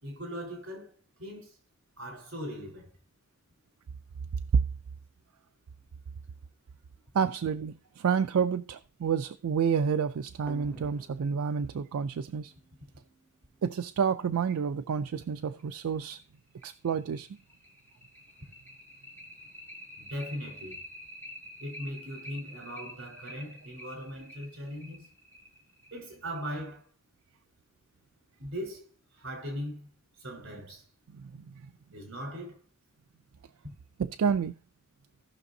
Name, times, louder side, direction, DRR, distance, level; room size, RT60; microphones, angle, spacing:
voice 1, 0.0-1.6 2.0-2.9 20.0-20.8 21.6-25.1 25.9-26.9 28.4-29.9 30.1-30.9 31.9-32.6 33.6-33.7, equal, 60° right, 3.9 m, -39 dB
voice 2, 7.1-12.5 13.6-16.2 16.6-17.3 31.1-31.7 34.0-34.5, right 6 dB, 80° right, 0.4 m, -29 dB
sound 1, 10.5-13.6 15.1-15.2 15.6-15.7 16.1-16.2 16.6-26.7, equal, 10° left, 1.9 m, -48 dB
17.5 x 6.0 x 2.7 m
head